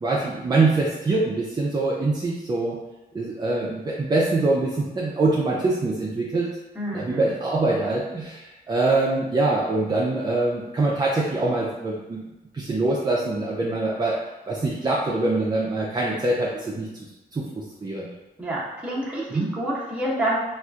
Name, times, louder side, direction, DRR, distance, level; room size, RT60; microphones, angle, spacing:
voice 1, 0.0-2.8 3.1-6.6 6.9-12.2 12.5-16.9 17.3-18.1 19.3-19.5, right 2 dB, 25° right, -4 dB, 0.5 m, -24 dB
voice 2, 6.8-7.3 18.4-20.4, right 1 dB, 10° right, -7 dB, 1.0 m, -28 dB
4.2 x 2.5 x 2.4 m, 1.0 s
wide cardioid pair, 115°, 17 cm